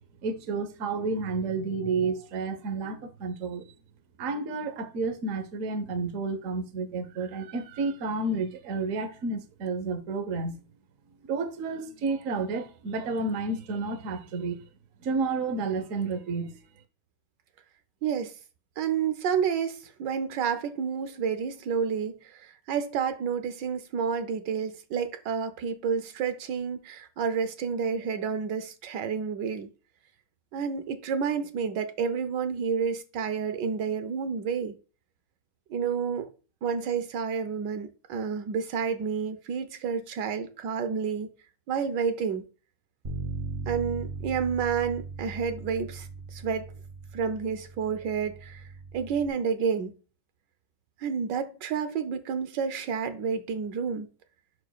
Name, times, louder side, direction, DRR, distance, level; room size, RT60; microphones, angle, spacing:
voice 1, 0.2-3.6 4.2-10.6 11.2-14.6 15.0-16.6, right 3 dB, 55° right, 1.1 m, -31 dB
voice 2, 18.0-18.3 18.8-29.7 30.5-34.7 35.7-36.3 36.6-41.3 41.7-42.4 43.7-46.7 47.1-48.6 48.9-49.9 51.0-54.1, right 6 dB, 75° right, 1.3 m, -30 dB
Bass guitar, 43.0-49.3, right 4 dB, 35° right, 0.9 m, -39 dB
11.5 x 4.3 x 2.3 m
omnidirectional pair, 2.0 m